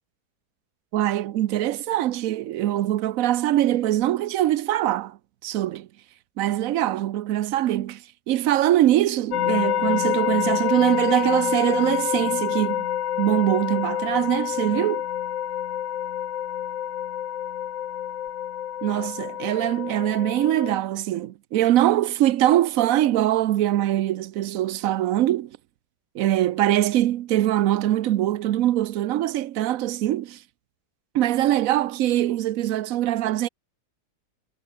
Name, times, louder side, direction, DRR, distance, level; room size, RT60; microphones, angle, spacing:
voice 1, 0.9-5.2 5.4-5.9 6.4-12.8 13.2-15.0 18.8-25.5 26.1-30.4 31.1-33.5, right 13 dB, 65° right, 0.9 m, -23 dB
sound 1, 9.3-20.8, left 11 dB, 60° left, 1.1 m, -27 dB
omnidirectional pair, 1.8 m